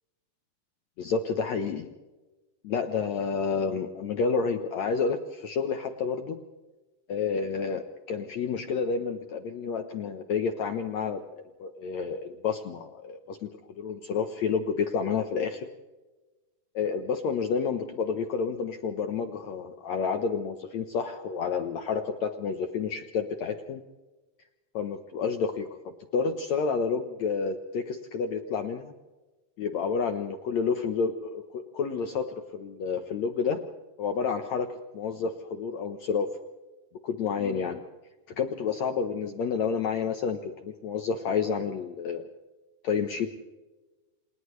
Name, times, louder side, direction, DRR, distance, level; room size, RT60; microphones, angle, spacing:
voice 1, 1.0-1.9 2.6-6.4 7.1-11.2 11.6-13.5 13.8-15.7 16.8-23.8 24.7-25.7 26.1-28.9 29.6-32.2 32.5-33.6 34.0-36.3 37.0-37.8 38.4-42.3 42.8-43.3, left 5 dB, 65° left, 6 dB, 1.9 m, -29 dB
29.0 x 29.0 x 3.2 m, 1.2 s
omnidirectional pair, 4.2 m